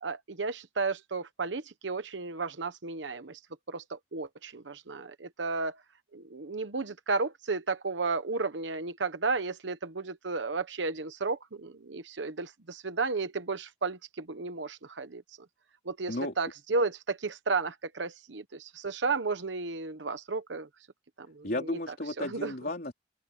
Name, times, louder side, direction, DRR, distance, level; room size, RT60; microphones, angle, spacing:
voice 1, 0.0-3.4 3.7-5.8 6.1-15.2 15.9-20.7 21.2-21.8 22.2-22.5, right 4 dB, 75° right, 1.0 m, -33 dB
voice 2, 21.4-22.9, left 1 dB, 55° left, 3.9 m, -33 dB
open air
head